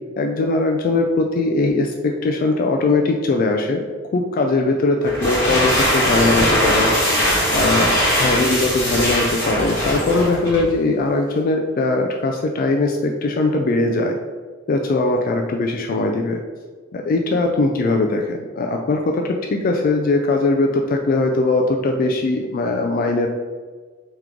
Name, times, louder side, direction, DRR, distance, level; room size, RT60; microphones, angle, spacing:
voice 1, 0.2-3.9 4.1-6.9 7.5-7.9 8.2-14.2 14.7-16.4 16.9-23.3, left 2 dB, 45° left, 3 dB, 0.3 m, -20 dB
sound 1, 5.0-10.7, equal, 15° left, 1.5 m, -20 dB
3.7 x 3.0 x 3.5 m, 1.5 s
head